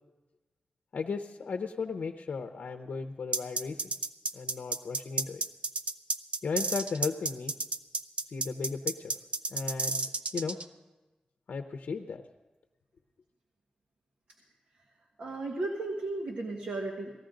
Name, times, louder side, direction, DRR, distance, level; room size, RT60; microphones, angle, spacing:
voice 1, 0.9-3.9 4.3-5.4 6.4-7.5 8.3-9.1 9.5-10.1 10.3-10.6 11.5-12.2, left 5 dB, 80° left, 5 dB, 0.7 m, -35 dB
sound 1, 3.3-10.6, right 3 dB, 45° right, 0.5 m, -31 dB
voice 2, 15.2-17.1, right 2 dB, 80° right, -1 dB, 1.5 m, -35 dB
18.5 x 14.0 x 3.8 m, 1.2 s
wide cardioid pair, 155°, 3 cm